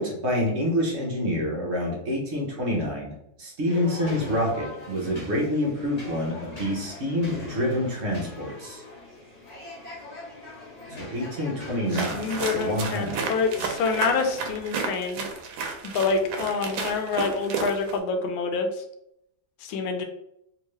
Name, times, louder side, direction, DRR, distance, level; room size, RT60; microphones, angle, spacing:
voice 1, 0.0-8.8 10.9-13.3, left 1 dB, 50° right, -1 dB, 0.8 m, -27 dB
sound 1, 3.7-14.5, left 2 dB, 30° left, 0.8 m, -41 dB
voice 2, 11.9-15.3 15.8-18.8 19.6-20.0, left 4 dB, 85° left, 5 dB, 1.4 m, -27 dB
sound 2, 11.9-18.0, right 4 dB, 80° right, 1.4 m, -32 dB
3.6 x 2.9 x 3.1 m, 0.78 s
omnidirectional pair, 2.1 m